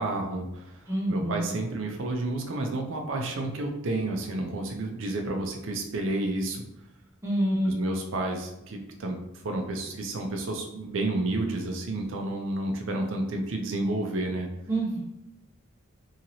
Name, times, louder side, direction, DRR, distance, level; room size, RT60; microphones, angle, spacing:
voice 1, 0.0-6.6 7.6-9.2 9.4-14.5, right 2 dB, 65° right, 2 dB, 0.5 m, -30 dB
voice 2, 0.9-1.4 7.2-7.7 14.7-15.0, right 1 dB, 15° right, -7 dB, 0.5 m, -27 dB
2.8 x 2.7 x 2.8 m, 0.86 s
head